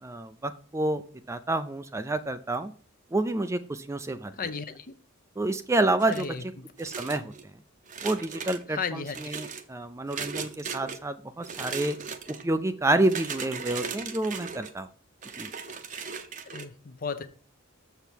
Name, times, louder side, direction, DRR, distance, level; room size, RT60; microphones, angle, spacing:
voice 1, 0.0-1.0 1.3-2.7 3.1-4.3 5.4-6.5 6.8-7.3 8.0-12.0 12.4-14.9 15.4-15.5, right 2 dB, 15° right, 0.4 m, -28 dB
voice 2, 4.4-4.8 6.1-6.4 8.7-9.4 16.5-17.3, left 5 dB, 40° left, 0.7 m, -34 dB
sound 1, 6.0-6.4 6.8-7.4 7.9-8.6 9.1-9.6 10.1-11.0 11.4-12.4 13.0-14.7 15.2-16.7, right 6 dB, 40° right, 0.8 m, -37 dB
7.0 x 6.9 x 4.5 m
head